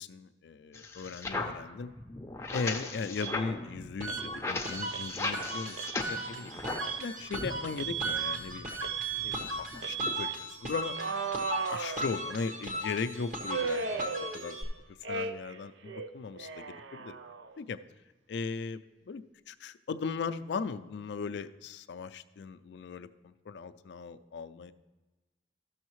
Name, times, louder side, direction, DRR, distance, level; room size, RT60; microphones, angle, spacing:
voice 1, 0.0-1.9 2.5-6.5 7.0-11.0 11.7-14.6 15.1-17.2 17.6-17.8 18.3-24.7, left 5 dB, 70° left, 12 dB, 0.4 m, -38 dB
sound 1, 0.7-7.0 7.3-10.2, left 3 dB, 15° left, 0.5 m, -38 dB
Alarm, 3.2-3.4 4.1-4.3 4.9-5.1 5.7-6.0 6.8-7.1 7.8-8.4 8.8-9.4 9.8-10.4 10.9-12.5 13.5-14.7 15.0-15.6 15.8-17.6, right 6 dB, 85° right, 0.5 m, -36 dB
sound 2, 4.0-14.6, equal, 45° right, 1.3 m, -38 dB
14.0 x 6.3 x 3.1 m, 1.2 s
head